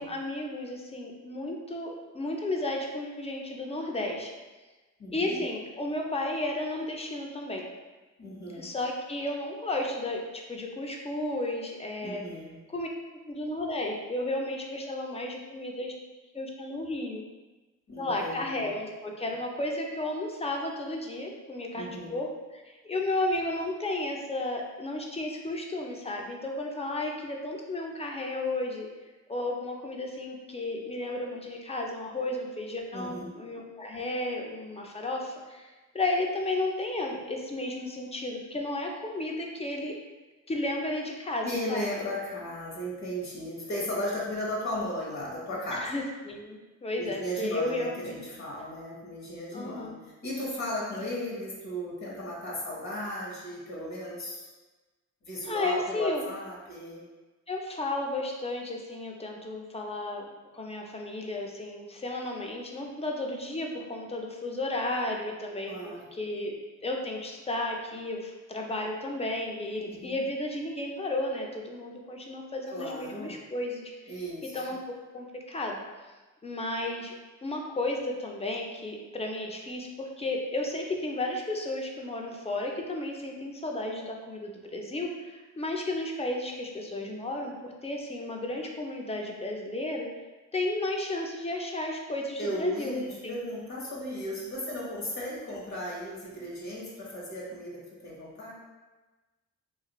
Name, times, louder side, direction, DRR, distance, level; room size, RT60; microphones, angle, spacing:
voice 1, 0.0-4.3 5.1-7.7 8.6-12.2 12.7-12.9 13.3-15.9 16.3-17.2 18.0-28.9 29.3-35.7 35.9-40.0 40.5-41.9 45.7-48.2 49.5-50.0 55.4-56.2 57.5-60.3 60.5-66.5 66.8-74.1 74.5-75.8 76.4-77.1 77.4-90.1 90.5-93.4, left 2 dB, 20° left, 1 dB, 0.4 m, -33 dB
voice 2, 5.0-5.4 8.2-8.7 12.0-12.5 17.9-18.7 21.7-22.1 32.9-33.3 41.4-45.9 47.0-54.5 55.2-57.0 65.7-66.0 69.9-70.2 72.7-73.3 74.1-74.6 92.4-98.5, equal, 60° left, -5 dB, 1.2 m, -35 dB
3.1 x 2.5 x 2.9 m, 1.2 s
cardioid pair, 100°, 31 cm